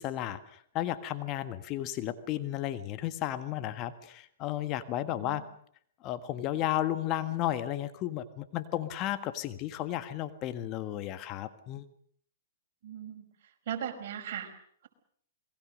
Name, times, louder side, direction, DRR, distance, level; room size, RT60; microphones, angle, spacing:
voice 1, 0.0-5.4 6.0-11.9, left 13 dB, 35° left, 11 dB, 1.7 m, -33 dB
voice 2, 5.1-5.4 12.8-13.2 13.7-14.5, right 9 dB, 55° right, 4 dB, 5.5 m, -38 dB
27.5 x 21.5 x 6.5 m, 0.63 s
hypercardioid pair, 125°, 0 cm